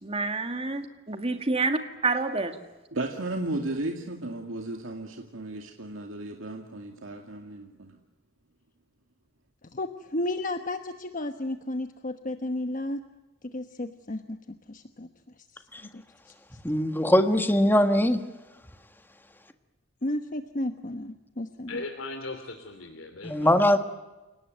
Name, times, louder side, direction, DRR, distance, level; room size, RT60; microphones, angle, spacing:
voice 1, 0.0-2.6, right 3 dB, 30° right, 2.0 m, -28 dB
voice 2, 2.9-8.0, right 2 dB, 80° right, 2.3 m, -34 dB
voice 3, 9.6-13.0 13.4-15.1 15.4-15.6 15.9-16.3 20.0-21.8, left 1 dB, 40° left, 1.1 m, -33 dB
voice 4, 16.6-18.2 23.2-23.8, left 1 dB, 10° left, 1.5 m, -21 dB
voice 5, 21.7-23.5, left 2 dB, 90° left, 2.8 m, -38 dB
29.5 x 18.5 x 9.3 m
head